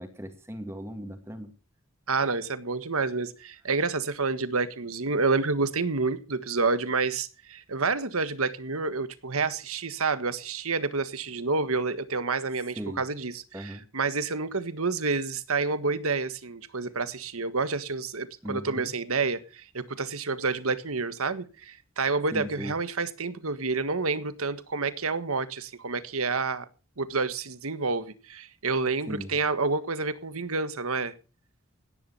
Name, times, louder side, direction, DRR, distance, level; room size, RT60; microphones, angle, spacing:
voice 1, 0.0-1.5 12.8-13.0 13.5-13.8 18.4-18.9 22.3-22.7 29.1-29.4, equal, 10° right, 2.0 m, -37 dB
voice 2, 2.1-26.6 27.0-31.1, right 4 dB, 85° right, 1.6 m, -29 dB
16.5 x 10.5 x 5.6 m
head